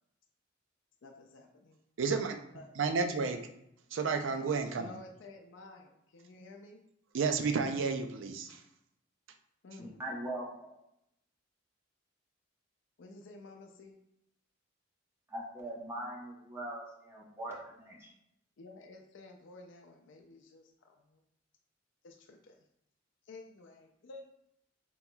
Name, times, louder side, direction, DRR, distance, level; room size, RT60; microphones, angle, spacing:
voice 1, 1.0-1.8 2.5-3.0 4.8-6.8 9.6-10.0 13.0-14.0 18.6-21.2 22.0-22.7 23.2-24.3, left 2 dB, 75° left, 3 dB, 0.4 m, -52 dB
voice 2, 2.0-2.4 2.8-3.5 3.9-4.9 7.1-8.6, right 5 dB, 80° right, 6 dB, 0.4 m, -31 dB
voice 3, 10.0-10.8 15.3-18.1, right 1 dB, 15° right, -4 dB, 0.8 m, -41 dB
5.4 x 3.0 x 2.3 m, 0.79 s
head